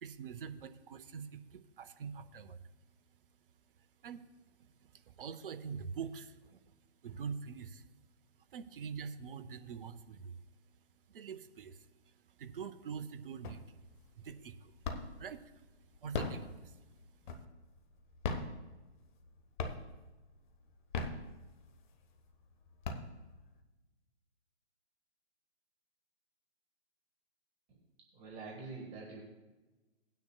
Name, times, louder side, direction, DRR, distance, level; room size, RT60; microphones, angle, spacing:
voice 1, 0.0-2.6 4.0-4.3 4.8-6.6 7.0-7.8 8.5-10.4 11.1-14.7 15.2-15.5 16.0-16.8, right 6 dB, 50° right, 11 dB, 0.7 m, -45 dB
sound 1, 13.4-13.9 14.3-15.3 15.9-17.7 18.1-19.3 19.6-20.1 20.7-21.8 22.3-22.4 22.7-23.6, left 4 dB, 45° left, 1.1 m, -38 dB
voice 2, 28.1-29.2, right 4 dB, 20° right, -2 dB, 1.3 m, -46 dB
18.5 x 9.3 x 2.3 m, 1.1 s
figure-of-eight pair, 135°, 34 cm